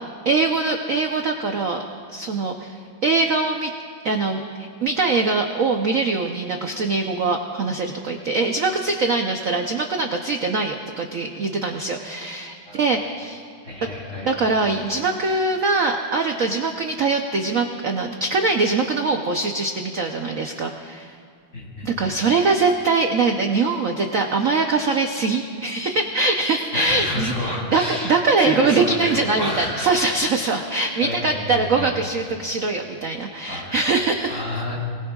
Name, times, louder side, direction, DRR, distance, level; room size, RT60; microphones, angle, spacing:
voice 1, 0.2-1.8 2.1-3.7 4.0-13.4 14.2-21.2 21.8-34.4, right 3 dB, 60° right, 3 dB, 0.9 m, -22 dB
voice 2, 13.6-14.3 21.5-21.9 26.7-30.0 31.0-31.9 33.5-33.8 34.3-34.8, left 1 dB, 35° left, -6 dB, 6.2 m, -29 dB
29.5 x 20.0 x 2.4 m, 2.2 s
omnidirectional pair, 2.4 m